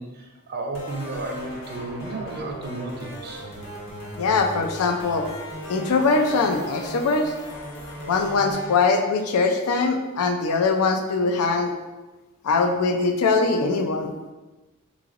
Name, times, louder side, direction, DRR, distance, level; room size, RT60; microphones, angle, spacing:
voice 1, 0.0-3.4, right 2 dB, 45° right, 2 dB, 0.5 m, -33 dB
sound 1, 0.7-8.7, right 1 dB, 55° left, 1.1 m, -37 dB
voice 2, 4.2-5.3 5.7-7.3 8.1-11.7 12.4-14.1, left 4 dB, 90° left, 5 dB, 0.4 m, -22 dB
3.7 x 3.1 x 2.5 m, 1.2 s
head